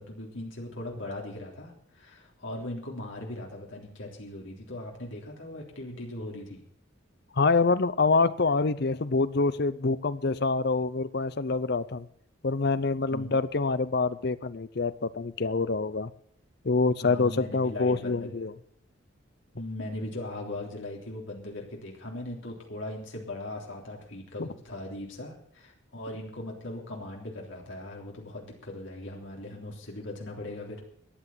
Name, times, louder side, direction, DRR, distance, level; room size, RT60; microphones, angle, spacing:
voice 1, 0.0-6.6 13.1-13.3 17.0-18.3 19.5-30.8, left 1 dB, 70° left, -1 dB, 3.5 m, -39 dB
voice 2, 7.4-12.1 12.4-16.1 16.6-18.5 24.4-24.5, left 3 dB, 50° left, 16 dB, 0.6 m, -26 dB
14.0 x 10.0 x 7.3 m, 0.65 s
head